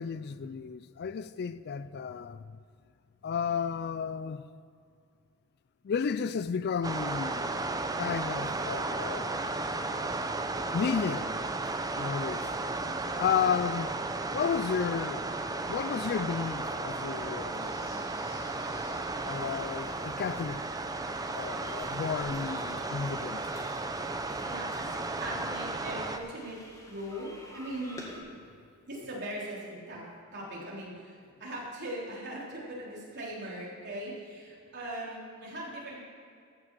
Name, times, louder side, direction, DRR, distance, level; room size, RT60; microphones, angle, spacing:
voice 1, 0.0-2.4 3.2-4.4 5.8-7.6 8.0-9.8 10.7-11.3 11.9-12.5 13.2-13.9 14.3-15.3 15.7-18.0 19.2-20.6 21.3-23.5, left 6 dB, 50° left, 0.3 m, -32 dB
sound 1, 6.8-26.2, right 2 dB, 15° right, 0.6 m, -34 dB
sound 2, 17.6-28.2, left 1 dB, 15° left, 1.8 m, -50 dB
voice 2, 24.1-26.6 26.9-28.0 28.9-30.0 30.3-36.0, right 1 dB, 55° right, 3.5 m, -40 dB
14.5 x 6.1 x 7.5 m
head